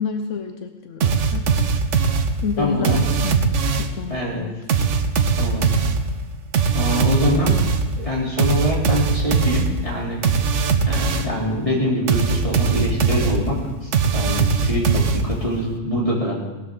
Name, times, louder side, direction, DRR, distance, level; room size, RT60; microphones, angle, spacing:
voice 1, 0.0-1.5 2.4-4.6, left 6 dB, 80° left, 6 dB, 1.2 m, -29 dB
sound 1, 1.0-4.1 4.7-11.4 12.1-15.6, right 5 dB, 75° right, 1.2 m, -21 dB
voice 2, 2.6-3.0 4.1-4.4 5.4-5.6 6.7-7.6 8.0-10.2 10.9-16.4, equal, 25° left, -5 dB, 3.6 m, -24 dB
18.5 x 13.0 x 3.9 m, 1.2 s
omnidirectional pair, 1.3 m